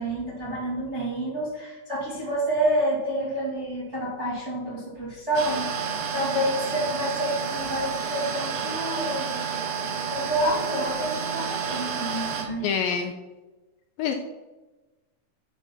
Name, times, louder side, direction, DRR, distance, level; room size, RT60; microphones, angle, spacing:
voice 1, 0.0-5.7 6.1-9.4 10.1-12.7, right 1 dB, 25° right, -6 dB, 1.7 m, -28 dB
sound 1, 5.3-12.4, right 6 dB, 70° right, 2.7 m, -30 dB
voice 2, 12.6-13.1 14.0-14.1, left 7 dB, 85° left, 5 dB, 2.2 m, -26 dB
10.5 x 4.4 x 5.9 m, 1.1 s
omnidirectional pair, 4.6 m